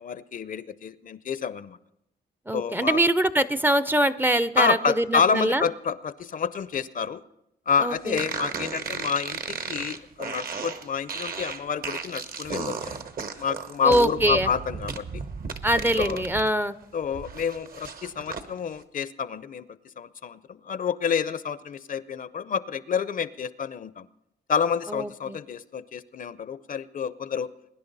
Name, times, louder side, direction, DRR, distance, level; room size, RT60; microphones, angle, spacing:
voice 1, 0.0-1.8 2.5-3.0 4.6-7.2 7.7-13.0 13.4-15.2 16.0-16.2 16.9-19.6 20.0-24.1 24.5-27.5, left 6 dB, 50° left, 16 dB, 0.6 m, -28 dB
voice 2, 2.5-5.7 7.8-8.2 13.8-14.5 15.6-16.8 24.9-25.4, right 1 dB, 10° right, 14 dB, 0.5 m, -23 dB
sound 1, 8.2-16.5 16.8-18.5, right 5 dB, 55° right, 1.0 m, -35 dB
22.5 x 10.5 x 4.0 m, 0.81 s
cardioid pair, 95°, 18 cm